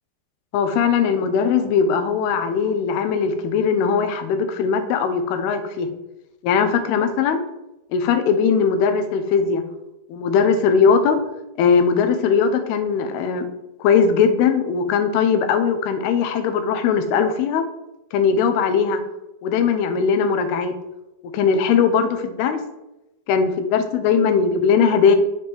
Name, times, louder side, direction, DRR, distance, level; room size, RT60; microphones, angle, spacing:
voice 1, 0.5-5.9 6.4-7.4 7.9-9.6 10.1-11.2 11.6-13.5 13.8-17.6 18.1-19.0 19.4-20.8 21.3-22.6 23.3-25.2, left 6 dB, 85° left, 8 dB, 2.7 m, -19 dB
7.1 x 3.3 x 5.9 m, 0.95 s
omnidirectional pair, 4.4 m